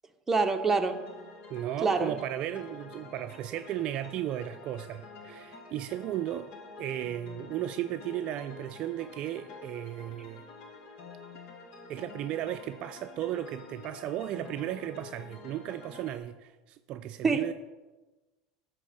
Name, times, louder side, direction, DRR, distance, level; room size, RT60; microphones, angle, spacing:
voice 1, 0.3-1.0 1.8-2.2 17.2-17.5, right 4 dB, 15° right, 5 dB, 0.8 m, -26 dB
sound 1, 0.7-16.2, left 4 dB, 65° left, 1.5 m, -48 dB
voice 2, 1.5-6.5 6.8-10.5 11.9-17.5, right 12 dB, 50° right, 10 dB, 0.3 m, -35 dB
9.9 x 3.5 x 6.8 m, 1.2 s
supercardioid pair, 105°, 2 cm